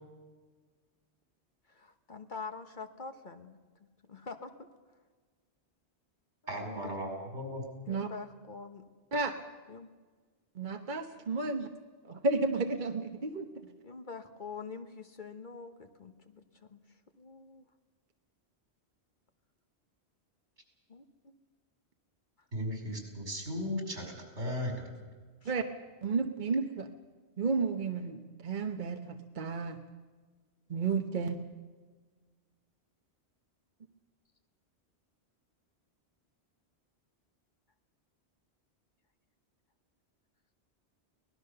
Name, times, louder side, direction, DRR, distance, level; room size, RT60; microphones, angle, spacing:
voice 1, 1.7-3.6 4.1-4.7 6.6-7.4 7.9-8.9 9.7-9.9 11.4-11.5 13.8-16.8 17.1-17.6 20.9-21.4 25.4-25.5, left 4 dB, 45° left, 8 dB, 1.3 m, -45 dB
voice 2, 6.5-7.6 22.5-24.9, equal, 80° right, 3 dB, 5.4 m, -36 dB
voice 3, 10.6-11.7 12.0-13.5 25.4-25.6 26.0-26.9 27.4-29.8 30.7-31.4, right 4 dB, 45° right, 5 dB, 1.1 m, -32 dB
24.0 x 19.0 x 6.8 m, 1.4 s
omnidirectional pair, 1.1 m